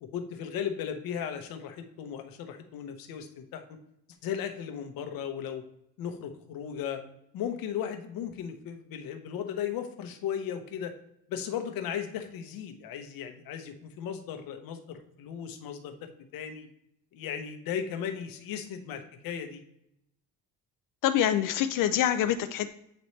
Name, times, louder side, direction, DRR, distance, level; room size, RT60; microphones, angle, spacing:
voice 1, 0.0-3.8 4.2-5.6 6.0-7.0 7.3-10.9 11.3-16.7 17.1-19.6, left 8 dB, 90° left, 6 dB, 0.9 m, -36 dB
voice 2, 21.0-22.7, left 11 dB, 70° left, 9 dB, 0.5 m, -25 dB
7.8 x 4.1 x 3.2 m, 0.80 s
cardioid pair, 140°, 34 cm